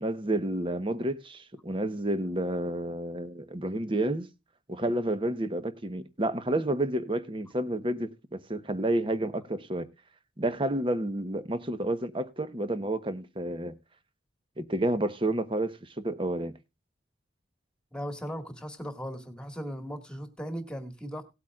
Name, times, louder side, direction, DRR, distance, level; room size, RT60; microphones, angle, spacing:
voice 1, 0.0-4.3 4.7-9.9 10.4-13.7 14.6-16.5, right 1 dB, 30° right, 1.0 m, -30 dB
voice 2, 17.9-21.2, equal, 5° left, 1.8 m, -37 dB
18.5 x 8.3 x 2.4 m
head